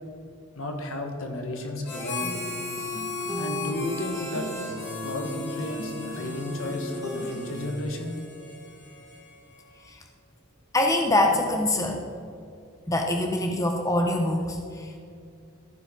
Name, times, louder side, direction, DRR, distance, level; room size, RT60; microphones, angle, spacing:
voice 1, 0.6-2.5 3.4-4.5 5.0-8.2, left 1 dB, 70° left, 4 dB, 1.3 m, -33 dB
Harmonica, 1.8-9.6, left 3 dB, 55° left, 2.6 m, -38 dB
sound 1, 2.2-7.8, left 1 dB, 15° right, 1.3 m, -36 dB
voice 2, 10.7-12.1 12.9-15.0, left 1 dB, 15° left, 3 dB, 0.5 m, -24 dB
14.5 x 5.0 x 5.1 m, 2.4 s
head